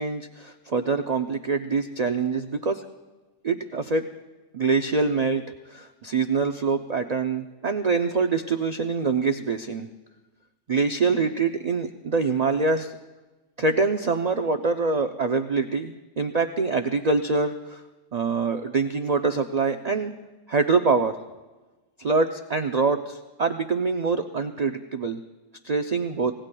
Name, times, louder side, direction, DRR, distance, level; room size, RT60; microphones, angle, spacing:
voice 1, 0.0-2.9 3.4-4.1 4.5-5.4 5.7-9.9 10.7-12.9 13.6-17.8 18.1-20.1 20.5-21.2 22.0-25.2 25.6-26.3, right 4 dB, 65° right, 6 dB, 0.4 m, -25 dB
25.5 x 18.5 x 2.3 m, 1.2 s
omnidirectional pair, 1.5 m